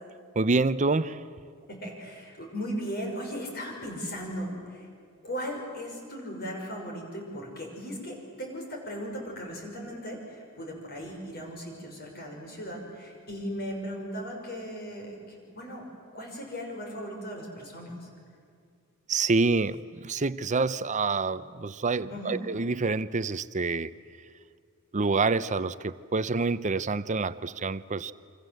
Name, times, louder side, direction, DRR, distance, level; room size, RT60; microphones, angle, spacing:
voice 1, 0.4-1.2 19.1-23.9 24.9-28.1, right 3 dB, 35° right, 15 dB, 0.7 m, -27 dB
voice 2, 1.7-4.9 5.2-15.9 16.1-18.1 22.1-22.4, equal, 45° left, 1 dB, 6.1 m, -37 dB
28.5 x 25.5 x 7.9 m, 2.2 s
head